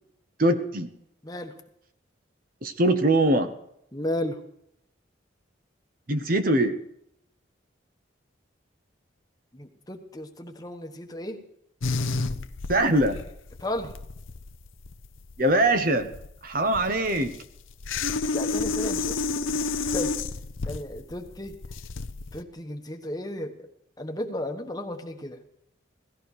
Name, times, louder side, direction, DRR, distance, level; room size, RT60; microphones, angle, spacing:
voice 1, 0.4-0.9 2.6-3.5 6.1-6.8 12.7-13.2 15.4-16.1 16.4-17.3, right 1 dB, 45° right, 9 dB, 1.0 m, -22 dB
voice 2, 1.2-1.6 3.9-4.4 9.5-11.4 13.6-13.9 18.3-19.2 19.9-20.1 20.6-21.6 22.3-23.5 24.0-25.4, left 1 dB, 20° left, 5 dB, 1.2 m, -33 dB
sound 1, 11.8-22.4, left 4 dB, 85° left, 0.8 m, -31 dB
17.5 x 14.0 x 4.8 m, 0.75 s
head